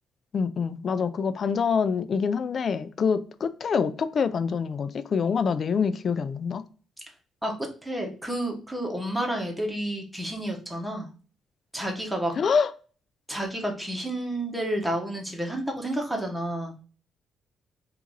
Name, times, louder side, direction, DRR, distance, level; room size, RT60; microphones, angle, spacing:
voice 1, 0.3-6.6 12.4-12.7, left 6 dB, 50° left, 0.3 m, -26 dB
voice 2, 7.4-11.1 11.7-12.4 13.3-16.7, right 1 dB, 5° right, 1.0 m, -30 dB
2.9 x 2.5 x 3.7 m
cardioid pair, 90°, 0 cm